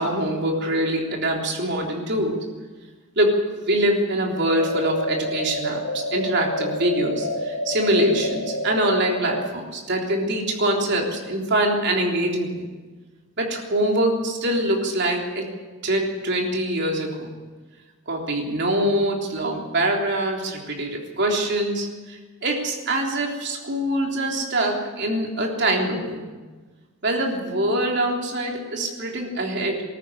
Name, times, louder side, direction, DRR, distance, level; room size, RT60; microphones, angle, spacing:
voice 1, 0.0-2.4 3.2-12.7 13.4-15.5 15.8-17.3 18.1-26.3 27.0-29.8, right 1 dB, 55° right, 0 dB, 3.6 m, -24 dB
sound 1, 4.5-9.5, left 1 dB, 75° left, 1.9 m, -28 dB
20.0 x 13.5 x 9.9 m, 1.3 s
head